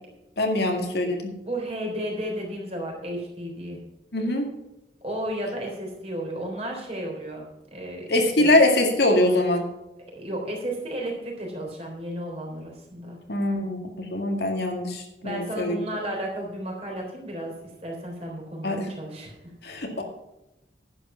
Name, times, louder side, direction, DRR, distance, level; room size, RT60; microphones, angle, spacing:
voice 1, 0.4-1.3 4.1-4.5 8.1-9.7 13.3-15.8 18.6-18.9 19.6-20.0, left 1 dB, 65° left, 2 dB, 2.1 m, -23 dB
voice 2, 1.4-3.8 5.0-8.5 10.1-13.2 15.2-19.3, right 1 dB, 35° right, 0 dB, 3.7 m, -33 dB
11.0 x 8.5 x 5.6 m, 0.94 s
head